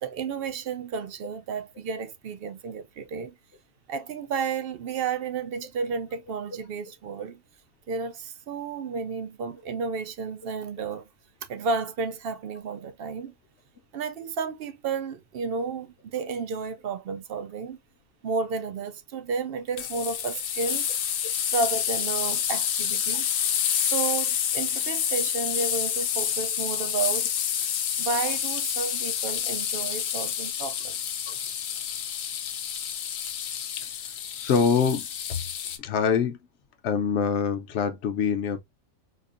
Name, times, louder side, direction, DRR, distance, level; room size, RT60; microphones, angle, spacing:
voice 1, 0.0-3.3 3.9-7.4 7.9-11.0 11.5-13.3 13.9-17.8 18.2-20.9 21.5-23.3 23.8-27.3 28.0-31.0, right 5 dB, 65° right, 0.6 m, -32 dB
sound 1, 19.8-35.8, left 9 dB, 80° left, 1.1 m, -28 dB
voice 2, 34.3-35.4 35.8-36.4 36.8-38.6, left 6 dB, 60° left, 0.9 m, -25 dB
4.3 x 2.5 x 2.5 m
omnidirectional pair, 1.4 m